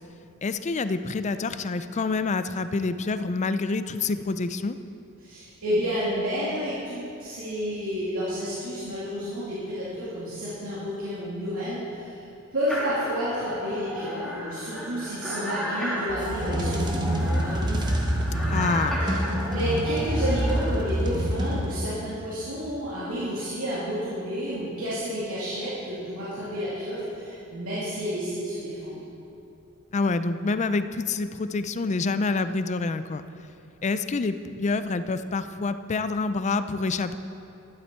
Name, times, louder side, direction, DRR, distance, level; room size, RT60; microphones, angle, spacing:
voice 1, 0.4-4.8 18.5-19.0 29.9-33.2 33.8-37.2, left 3 dB, 35° left, 12 dB, 0.4 m, -27 dB
voice 2, 5.2-12.2 12.5-17.8 19.0-19.2 19.5-29.0, equal, 80° right, -10 dB, 2.7 m, -30 dB
sound 1, 12.7-20.9, equal, ahead, 2.6 m, -33 dB
sound 2, 16.1-22.1, equal, 20° right, 1.0 m, -27 dB
12.5 x 11.0 x 4.5 m, 2.7 s
head